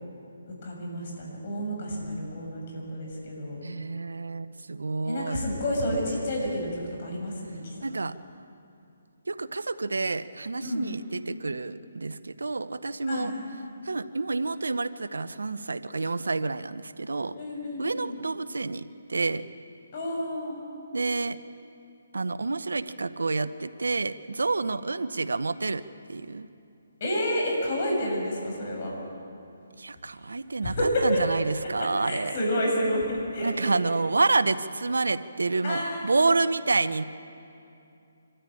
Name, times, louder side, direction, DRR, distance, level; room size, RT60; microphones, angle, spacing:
voice 1, 0.5-3.6 5.0-7.6 10.6-10.9 13.1-13.3 17.3-18.1 19.9-20.6 27.0-28.9 30.6-31.2 31.6-31.7 32.0-33.8 35.6-36.0, equal, 45° left, -1 dB, 6.7 m, -29 dB
voice 2, 3.6-5.4 7.8-8.2 9.3-13.3 13.8-17.3 17.8-19.4 20.9-21.4 22.1-25.8 26.1-26.5 29.8-30.8 31.0-32.4 33.4-37.0, right 3 dB, 85° right, 14 dB, 0.8 m, -28 dB
25.0 x 13.5 x 8.6 m, 2.7 s
hypercardioid pair, 155°, 0 cm